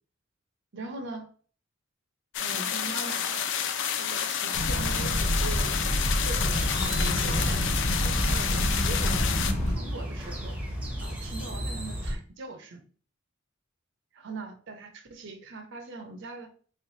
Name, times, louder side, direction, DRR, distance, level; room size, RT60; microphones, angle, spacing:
voice 1, 0.7-1.3 2.4-3.5 3.9-5.8 6.2-9.4 9.6-10.6 11.0-12.8 14.1-16.5, right 3 dB, 60° right, 5 dB, 0.6 m, -41 dB
sound 1, 2.3-9.5, left 8 dB, 65° left, 0.4 m, -30 dB
sound 2, 4.5-9.8, equal, 35° left, 0.8 m, -27 dB
sound 3, 6.3-12.2, equal, 5° right, 0.8 m, -34 dB
3.5 x 3.1 x 2.7 m, 0.43 s
head